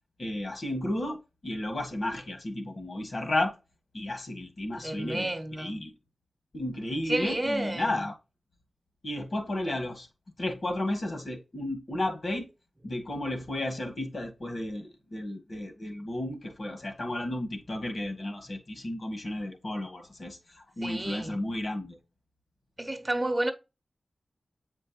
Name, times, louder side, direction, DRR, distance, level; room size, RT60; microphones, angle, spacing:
voice 1, 0.2-3.6 3.9-5.9 6.5-8.1 9.0-10.1 10.4-12.5 12.8-22.0, left 1 dB, 55° left, 1.6 m, -33 dB
voice 2, 4.7-5.8 7.0-8.1 20.8-21.4 22.8-23.5, right 1 dB, 25° right, 0.9 m, -31 dB
7.6 x 4.5 x 2.9 m
cardioid pair, 65°, 0 cm